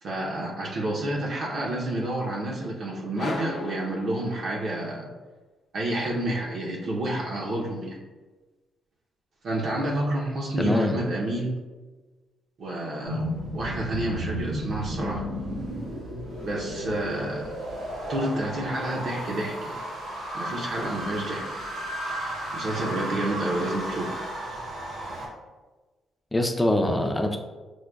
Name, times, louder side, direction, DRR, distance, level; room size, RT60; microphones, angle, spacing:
voice 1, 0.0-5.1 5.7-8.0 9.4-11.6 12.6-15.3 16.4-17.5 18.1-19.8 20.3-21.5 22.5-24.2, right 1 dB, 55° right, -2 dB, 0.6 m, -29 dB
sound 1, 3.2-4.9, left 2 dB, 60° left, 0.6 m, -36 dB
voice 2, 10.6-11.0 26.3-27.4, left 1 dB, 10° left, 3 dB, 0.4 m, -23 dB
sound 2, 13.0-25.3, equal, 80° right, 1.4 m, -33 dB
6.1 x 2.1 x 2.3 m, 1.3 s
cardioid pair, 120°, 0 cm